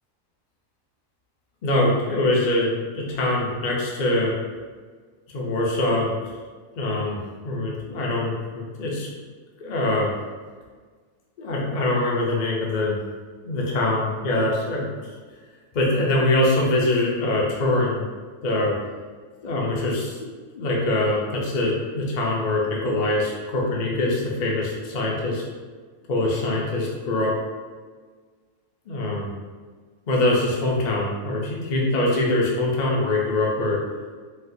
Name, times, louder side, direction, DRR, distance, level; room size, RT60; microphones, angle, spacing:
voice 1, 1.6-4.3 5.3-6.2 6.7-7.2 7.4-9.1 9.6-10.1 11.4-13.0 13.4-14.9 15.7-18.0 18.4-18.8 19.4-20.2 20.6-25.4 26.1-27.3 28.9-29.3 30.1-33.8, left 2 dB, 50° left, -3 dB, 0.6 m, -23 dB
4.2 x 2.3 x 2.6 m, 1.5 s
omnidirectional pair, 1.4 m